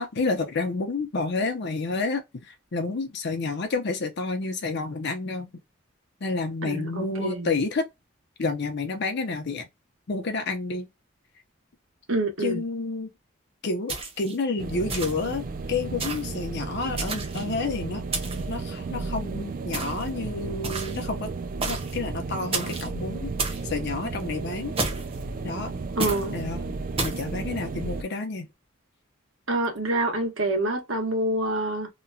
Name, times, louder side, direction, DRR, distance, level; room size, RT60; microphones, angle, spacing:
voice 1, 0.0-5.5 6.2-7.9 8.4-9.6 10.1-10.9 12.4-13.1 13.6-21.3 21.6-24.7 25.4-25.7 26.3-26.7 27.0-28.5, left 3 dB, 60° left, 0.6 m, -30 dB
voice 2, 6.6-7.5 12.1-12.6 26.0-26.4 29.5-31.9, right 1 dB, 80° right, 1.2 m, -27 dB
sound 1, 13.9-14.4 14.9-15.3 16.0-16.3 17.0-17.5 18.1-18.5 19.7-20.1 20.6-21.1 21.6-22.0 22.5-22.9 23.4-23.7 24.8-25.2 26.0-26.3 27.0-27.3, right 3 dB, 30° right, 0.9 m, -31 dB
sound 2, 14.6-28.0, right 3 dB, 45° right, 0.4 m, -34 dB
2.9 x 2.2 x 2.5 m
head